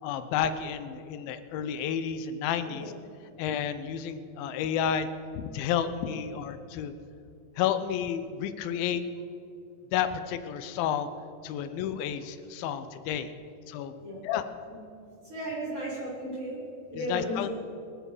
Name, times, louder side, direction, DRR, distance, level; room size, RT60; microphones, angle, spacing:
voice 1, 0.0-2.9 3.4-5.1 5.4-6.9 7.6-9.0 9.9-11.1 11.4-13.3 13.7-13.9 14.2-14.4 16.9-17.5, left 9 dB, 75° left, 10 dB, 2.2 m, -31 dB
voice 2, 15.3-16.6 16.9-17.4, equal, 35° right, -9 dB, 4.4 m, -35 dB
24.5 x 8.9 x 4.9 m, 2.5 s
omnidirectional pair, 4.8 m